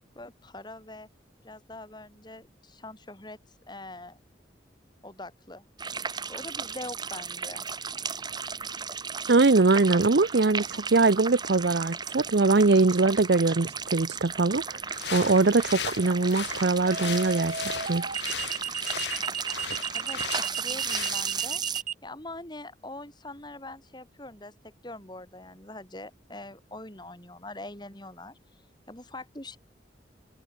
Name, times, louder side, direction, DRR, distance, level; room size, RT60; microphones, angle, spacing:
voice 1, 0.1-1.1 1.4-3.4 3.7-4.2 5.0-5.6 6.3-7.6 19.9-21.6 22.0-24.5 24.8-28.4 28.9-29.6, left 2 dB, 25° left, 6.6 m, -43 dB
sound 1, 5.8-21.8, right 6 dB, 25° right, 1.3 m, -35 dB
voice 2, 9.3-17.5 17.9-18.0, right 3 dB, 65° right, 0.7 m, -22 dB
sound 2, 13.6-13.9 16.9-21.9, right 7 dB, 45° right, 3.8 m, -33 dB
sound 3, 14.9-21.5, left 8 dB, 75° left, 1.8 m, -38 dB
head